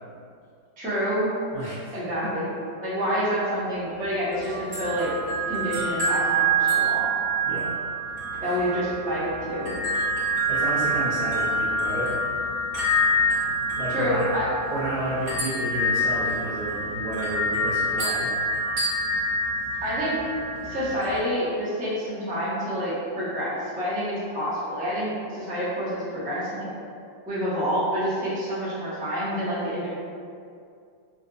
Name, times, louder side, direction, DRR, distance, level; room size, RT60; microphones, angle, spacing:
voice 1, 0.8-1.3 1.9-2.5 2.8-5.1 5.5-7.1 8.4-9.7 13.9-14.5 19.8-20.2 20.6-26.7 27.3-29.9, equal, 10° right, -11 dB, 0.3 m, -28 dB
voice 2, 1.5-1.9 7.5-7.7 8.4-8.6 10.5-12.1 13.8-14.3 14.7-18.3, right 1 dB, 80° right, -12 dB, 0.5 m, -31 dB
sound 1, 4.3-21.2, right 1 dB, 30° right, 1.0 m, -26 dB
4.2 x 2.5 x 2.3 m, 2.3 s
omnidirectional pair, 2.0 m